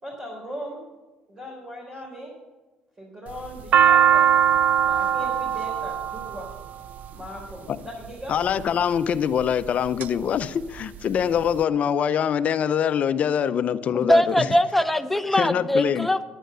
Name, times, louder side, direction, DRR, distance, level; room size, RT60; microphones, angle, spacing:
voice 1, 0.0-0.8 1.3-2.3 3.0-4.3 4.8-6.5 7.1-8.4, equal, 30° right, 4.0 m, -38 dB
sound 1, 3.3-7.5 8.3-8.8 9.4-10.1 10.4-10.5 10.7-11.5, right 9 dB, 60° right, 0.4 m, -21 dB
voice 2, 8.3-14.5 15.3-16.1, left 8 dB, 50° left, 0.6 m, -24 dB
voice 3, 14.0-16.2, left 1 dB, 5° left, 0.7 m, -21 dB
10.0 x 10.0 x 6.8 m
cardioid pair, 105°, 3 cm